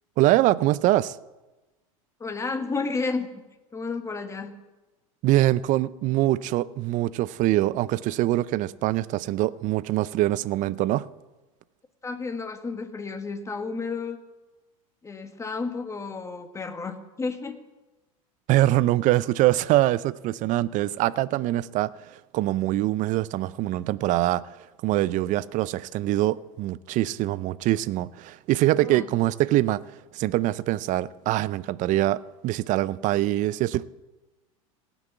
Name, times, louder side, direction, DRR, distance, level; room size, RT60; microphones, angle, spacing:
voice 1, 0.2-1.2 5.2-11.1 18.5-21.9 22.3-24.4 24.8-29.8 30.1-33.8, right 15 dB, 45° right, 0.5 m, -24 dB
voice 2, 2.2-3.3 3.7-4.5 12.0-14.2 15.0-17.6 28.8-29.1, left 4 dB, 15° left, 1.5 m, -31 dB
17.5 x 6.2 x 8.1 m
hypercardioid pair, 95°, 18 cm